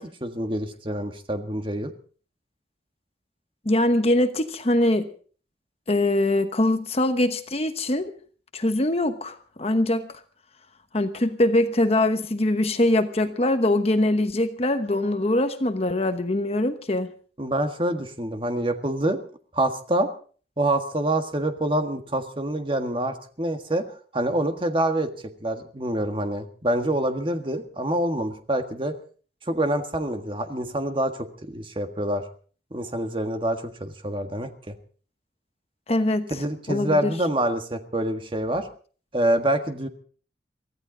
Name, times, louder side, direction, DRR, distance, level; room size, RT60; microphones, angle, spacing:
voice 1, 0.0-1.9 17.4-19.2 19.5-20.1 20.6-23.8 24.1-25.1 25.4-28.9 29.5-32.2 32.7-34.7 36.3-38.7 39.1-39.9, right 1 dB, 30° right, 6 dB, 1.6 m, -26 dB
voice 2, 3.6-5.1 5.9-8.1 8.5-10.1 10.9-17.1 35.9-36.3 36.7-37.1, left 1 dB, 35° left, 8 dB, 1.1 m, -23 dB
24.0 x 15.0 x 3.9 m, 0.42 s
head